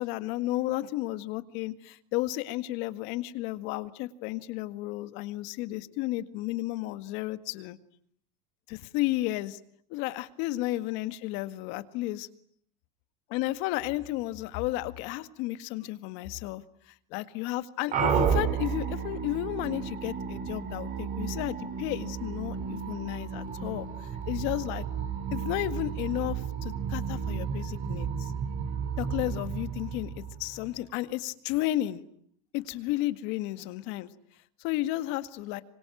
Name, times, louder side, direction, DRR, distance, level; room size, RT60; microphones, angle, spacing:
voice 1, 0.0-7.8 8.7-9.6 9.9-12.3 13.3-23.9 24.3-24.8 25.3-28.3 29.0-32.0 32.5-34.1 34.6-35.6, left 16 dB, 60° left, 12 dB, 1.9 m, -33 dB
sound 1, 17.9-30.8, right 6 dB, 35° right, 4.0 m, -32 dB
26.0 x 24.5 x 9.1 m, 0.65 s
supercardioid pair, 135°, 21 cm